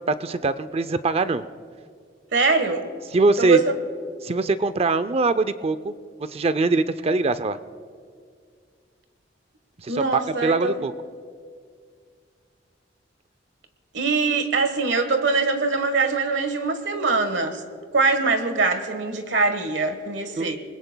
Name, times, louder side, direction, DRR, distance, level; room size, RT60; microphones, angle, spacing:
voice 1, 0.1-1.4 3.1-3.6 4.2-5.9 6.3-7.6 9.8-10.9 20.4-20.6, right 3 dB, 35° right, 0.5 m, -22 dB
voice 2, 2.3-2.9 3.4-3.7 9.9-10.8 13.9-17.6 17.9-20.6, right 4 dB, 75° right, 1.4 m, -23 dB
29.0 x 20.5 x 2.3 m
head